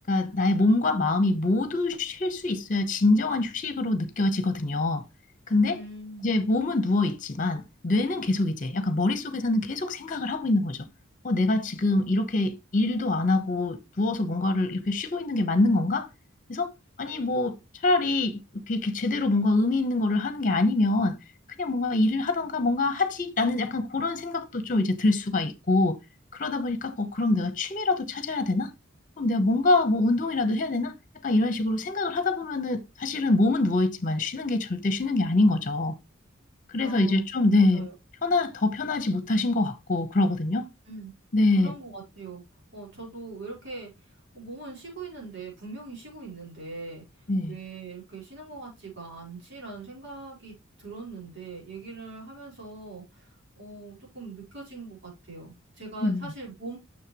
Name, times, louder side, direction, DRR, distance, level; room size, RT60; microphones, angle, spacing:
voice 1, 0.1-5.0 5.5-5.8 6.2-10.8 11.2-16.1 16.5-16.7 17.0-17.6 17.8-21.2 21.6-26.0 26.4-28.7 29.2-30.9 31.2-35.9 36.7-37.9 38.2-40.7 41.3-41.7 47.3-47.5 56.0-56.3, left 2 dB, 40° left, 1.0 m, -25 dB
voice 2, 5.7-6.3 36.8-37.2 37.7-37.9 40.9-41.1 41.6-42.4 42.7-56.8, right 3 dB, 60° right, 4.7 m, -42 dB
6.7 x 6.5 x 3.0 m
head